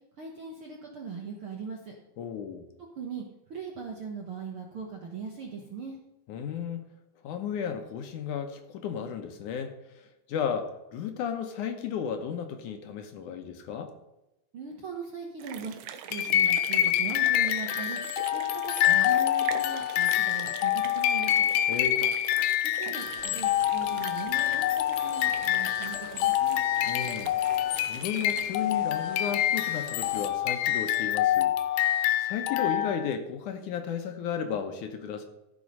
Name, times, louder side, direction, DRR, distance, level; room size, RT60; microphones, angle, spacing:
voice 1, 0.2-1.9 2.8-6.0 14.5-15.7 16.1-18.0 18.3-21.5 22.6-26.6, right 5 dB, 60° right, 0 dB, 1.4 m, -40 dB
voice 2, 2.2-2.7 6.3-6.9 7.2-13.9 21.7-22.1 26.9-27.3 27.9-35.3, left 7 dB, 70° left, 6 dB, 2.1 m, -34 dB
sound 1, 15.4-28.4, right 9 dB, 90° right, 2.6 m, -43 dB
sound 2, 16.1-33.2, left 12 dB, 90° left, 2.5 m, -26 dB
sound 3, 23.0-30.3, left 2 dB, 45° left, 4.1 m, -49 dB
14.5 x 6.1 x 5.3 m, 0.94 s
omnidirectional pair, 4.1 m